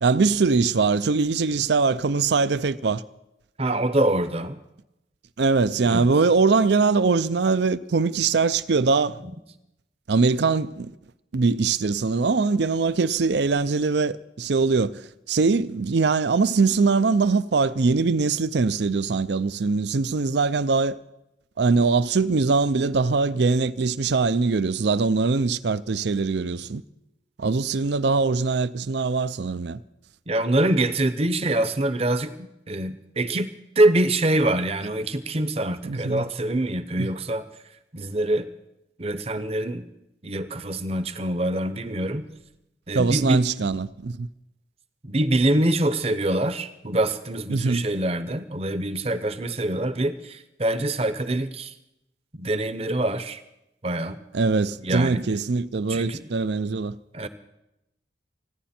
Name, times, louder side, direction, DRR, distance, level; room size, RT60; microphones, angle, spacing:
voice 1, 0.0-3.0 5.4-9.2 10.1-10.9 11.3-15.0 15.3-21.0 21.6-26.8 27.4-29.8 35.8-36.3 37.0-37.1 42.9-44.3 47.5-47.9 54.3-57.0, right 4 dB, 65° right, 0.5 m, -22 dB
voice 2, 3.6-4.6 5.9-6.0 30.3-33.5 33.8-37.4 37.9-38.5 39.0-39.9 40.2-42.2 42.9-43.4 45.0-51.7 52.3-53.4 53.8-54.2 54.8-55.2 55.9-56.3 57.1-57.3, right 1 dB, 30° right, 0.8 m, -24 dB
29.0 x 10.0 x 4.4 m
head